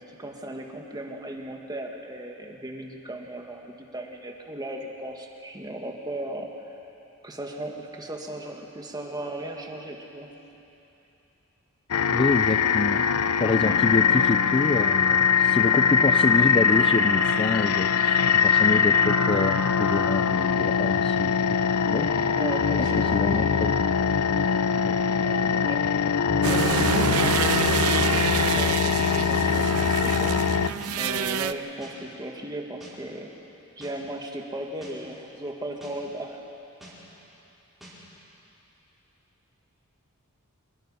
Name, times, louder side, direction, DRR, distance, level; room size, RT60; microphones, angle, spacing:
voice 1, 0.0-6.5 7.2-10.3 13.6-13.8 22.4-23.5 25.2-25.9 26.4-30.5 30.9-33.3 33.8-36.4, right 1 dB, 20° right, 2 dB, 1.8 m, -36 dB
sound 1, 11.9-30.7, left 6 dB, 90° left, 0.5 m, -22 dB
voice 2, 12.1-13.0 13.4-21.6 21.9-22.1 23.1-23.8 24.8-25.0, left 3 dB, 25° left, 10 dB, 0.4 m, -27 dB
sound 2, 26.4-31.5, right 7 dB, 75° right, 0.6 m, -27 dB
sound 3, 30.8-30.9 31.8-31.9 32.8-32.9 33.8-33.9 34.8-34.9 35.8-35.9 36.8-36.9 37.8-37.9, right 1 dB, ahead, 5.1 m, -46 dB
25.5 x 20.5 x 5.6 m, 3.0 s
head